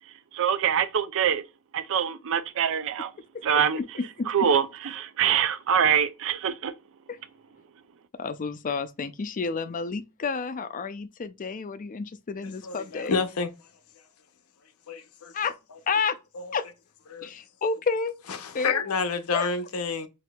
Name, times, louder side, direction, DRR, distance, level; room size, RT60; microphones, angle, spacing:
voice 1, 0.3-1.4 1.7-3.1 3.4-3.8 4.3-4.7 4.9-6.7, right 8 dB, 65° right, 0.5 m, -24 dB
voice 2, 3.8-4.3 7.1-7.2 8.2-13.2 15.3-15.6 15.9-16.2 16.5-16.6 17.2-18.1 18.5-18.9 19.3-19.4, left 5 dB, 35° left, 0.4 m, -30 dB
voice 3, 12.6-13.5 14.9-15.3 16.4-16.5 17.1-17.3 18.4-20.1, left 4 dB, 75° left, 0.7 m, -29 dB
5.9 x 2.7 x 2.2 m
head